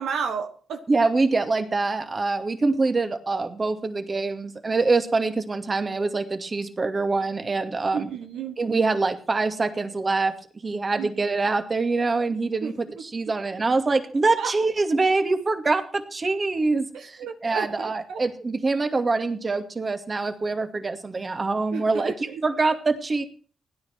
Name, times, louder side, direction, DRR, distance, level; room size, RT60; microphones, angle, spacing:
voice 1, 0.0-0.8 7.9-8.6 11.0-11.1 12.6-12.7 14.4-14.5 16.9-18.2 21.7-22.4, right 6 dB, 85° right, 5 dB, 1.3 m, -32 dB
voice 2, 0.9-8.1 8.6-10.3 10.6-23.2, right 3 dB, 40° right, 7 dB, 2.4 m, -25 dB
16.5 x 10.5 x 6.1 m, 0.42 s
supercardioid pair, 55°, 0 cm